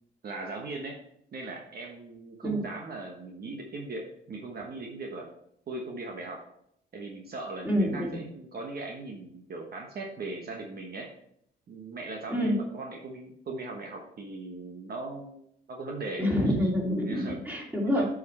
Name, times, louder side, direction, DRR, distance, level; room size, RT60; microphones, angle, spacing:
voice 1, 0.2-1.0 1.3-5.3 5.7-6.4 6.9-11.1 11.7-16.5 17.0-17.4 17.8-18.0, right 3 dB, 50° right, 1 dB, 1.2 m, -39 dB
voice 2, 7.6-8.2 12.3-12.6 16.2-18.0, equal, 10° right, -2 dB, 2.7 m, -27 dB
8.1 x 5.0 x 4.3 m, 0.71 s
cardioid pair, 90°, 20 cm